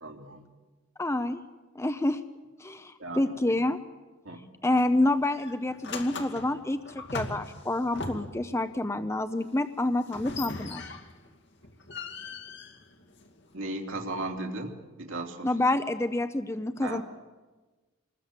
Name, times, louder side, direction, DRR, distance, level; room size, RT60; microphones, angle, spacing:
voice 1, 0.0-0.4 3.0-3.3 4.2-4.4 13.5-15.5 16.8-17.0, right 2 dB, 75° right, 2 dB, 2.9 m, -36 dB
voice 2, 1.0-1.4 1.8-2.2 2.6-3.8 4.6-10.8 15.4-17.0, left 2 dB, 15° left, 10 dB, 0.7 m, -28 dB
sound 1, 4.8-5.0 5.4-8.5 10.1-11.3 11.6-13.5, left 3 dB, 60° left, 2.4 m, -39 dB
26.5 x 20.5 x 7.7 m, 1.2 s
head